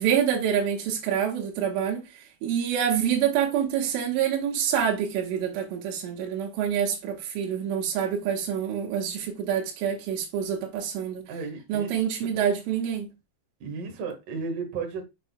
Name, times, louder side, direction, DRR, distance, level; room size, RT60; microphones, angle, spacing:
voice 1, 0.0-2.1 2.4-11.3 11.7-13.1, right 8 dB, 85° right, 3.8 m, -26 dB
voice 2, 11.3-12.6 13.6-15.1, right 4 dB, 55° right, 2.7 m, -34 dB
8.1 x 6.2 x 2.3 m
omnidirectional pair, 5.5 m